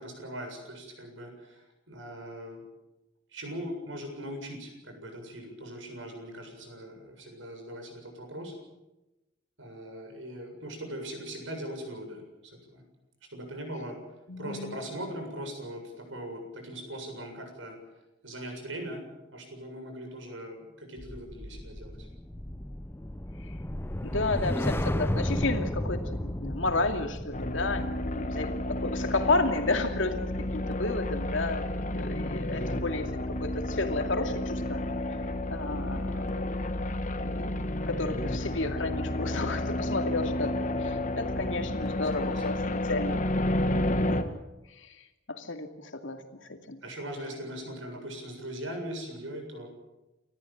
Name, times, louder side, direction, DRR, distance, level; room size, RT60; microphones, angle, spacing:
voice 1, 0.0-2.6 3.3-8.5 9.6-12.2 12.7-12.8 13.3-14.0 14.4-17.8 18.2-19.0 19.3-22.1 32.5-32.9 41.8-42.4 46.8-49.7, equal, 75° right, 4 dB, 7.5 m, -40 dB
voice 2, 14.3-14.8 23.5-23.6 24.0-28.5 28.8-30.2 30.5-31.7 31.9-33.1 33.4-34.8 35.5-36.5 37.2-37.5 37.9-43.2 43.9-44.4 44.8-46.8, left 3 dB, 75° left, 6 dB, 2.5 m, -32 dB
sound 1, 21.0-31.4 31.7-32.0, left 1 dB, 10° left, 0.7 m, -34 dB
sound 2, 27.3-44.2, left 1 dB, 40° left, 1.6 m, -31 dB
29.5 x 14.0 x 8.9 m, 0.99 s
head